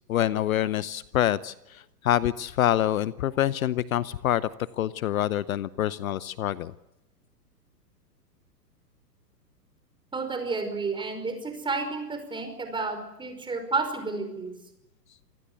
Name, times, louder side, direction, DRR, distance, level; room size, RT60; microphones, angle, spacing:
voice 1, 0.1-4.5 4.8-6.7, left 12 dB, 60° left, 18 dB, 0.9 m, -26 dB
voice 2, 10.1-14.5, right 4 dB, 10° right, 7 dB, 5.4 m, -31 dB
27.5 x 18.5 x 8.3 m, 0.88 s
figure-of-eight pair, 115°, 48 cm